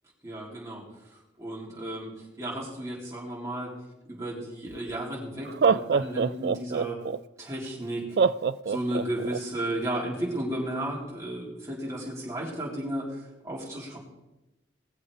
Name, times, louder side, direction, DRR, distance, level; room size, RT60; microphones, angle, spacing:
voice 1, 0.2-3.7 4.1-7.0 7.4-8.2 8.7-14.0, right 1 dB, 15° right, -5 dB, 3.7 m, -34 dB
Laughter, 4.7-4.8 5.5-7.2 8.2-9.4, right 5 dB, 55° right, 0.3 m, -24 dB
19.5 x 7.4 x 4.9 m, 0.98 s
head